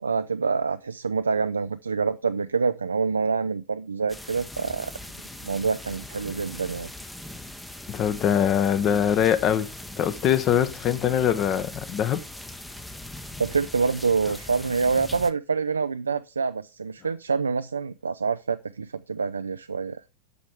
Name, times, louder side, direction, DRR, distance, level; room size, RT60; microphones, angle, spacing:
voice 1, 0.0-4.9 5.4-6.9 13.4-20.0, right 5 dB, 75° right, 0.3 m, -26 dB
sound 1, 4.1-15.3, left 1 dB, 5° left, 0.7 m, -40 dB
voice 2, 7.9-9.7 10.0-12.2, left 9 dB, 35° left, 0.9 m, -23 dB
8.3 x 6.2 x 3.4 m
figure-of-eight pair, 90°, 0 cm